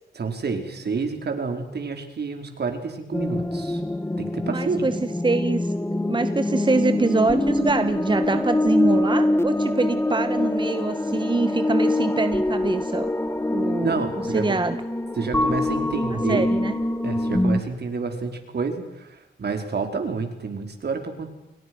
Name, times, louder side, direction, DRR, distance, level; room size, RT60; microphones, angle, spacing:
voice 1, 0.1-3.8 4.2-4.9 13.8-14.6 15.1-16.4 17.0-21.3, right 4 dB, 60° right, 6 dB, 4.9 m, -29 dB
sound 1, 3.1-17.6, left 1 dB, 15° left, 1.9 m, -24 dB
voice 2, 4.5-13.1 13.5-14.0 14.3-14.8 16.3-16.7, right 3 dB, 25° right, 10 dB, 1.5 m, -24 dB
29.5 x 23.5 x 6.3 m, 0.93 s
cardioid pair, 75°, 19 cm